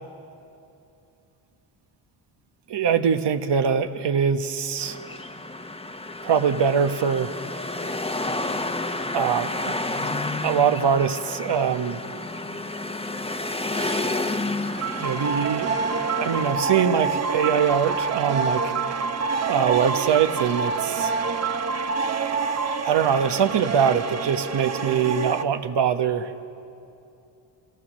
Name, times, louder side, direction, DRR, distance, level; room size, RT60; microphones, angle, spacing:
voice 1, 2.7-5.0 6.2-7.3 9.1-9.7 10.4-12.0 13.7-14.1 15.0-15.7 16.2-19.0 19.5-21.1 22.8-26.3, right 7 dB, 55° right, 8 dB, 1.2 m, -23 dB
sound 1, 4.8-16.5, left 2 dB, 10° left, 1.2 m, -30 dB
sound 2, 14.8-25.4, right 5 dB, 30° right, 1.0 m, -27 dB
25.0 x 17.5 x 6.3 m, 2.7 s
supercardioid pair, 65°, 48 cm